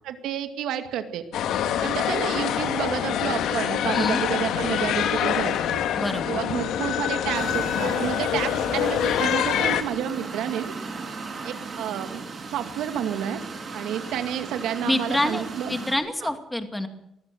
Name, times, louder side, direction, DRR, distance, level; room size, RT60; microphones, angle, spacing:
voice 1, 0.0-1.2 1.8-5.8 6.3-10.7 11.4-12.2 12.5-13.4 13.7-15.8 16.2-16.3, right 9 dB, 80° right, 8 dB, 2.2 m, -30 dB
sound 1, 1.3-9.8, left 10 dB, 75° left, 1.7 m, -25 dB
voice 2, 5.9-6.3 14.8-16.9, left 1 dB, 10° left, 7 dB, 2.3 m, -27 dB
sound 2, 7.3-16.0, right 4 dB, 40° right, 6.7 m, -36 dB
23.0 x 15.0 x 7.7 m, 0.84 s
cardioid pair, 95°, 0 cm